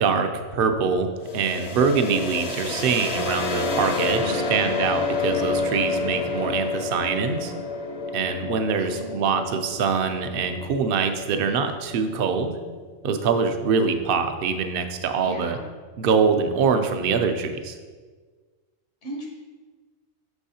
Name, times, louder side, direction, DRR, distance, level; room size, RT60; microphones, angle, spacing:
voice 1, 0.0-7.5 8.1-12.6 13.0-15.6 16.0-17.8, right 5 dB, 60° right, 7 dB, 0.7 m, -24 dB
sound 1, 1.2-12.9, left 3 dB, 40° left, 0.6 m, -29 dB
voice 2, 4.2-4.8 8.8-9.4 15.2-15.7 19.0-19.3, right 1 dB, 80° left, -2 dB, 1.5 m, -37 dB
8.1 x 6.2 x 2.8 m, 1.5 s
omnidirectional pair, 1.2 m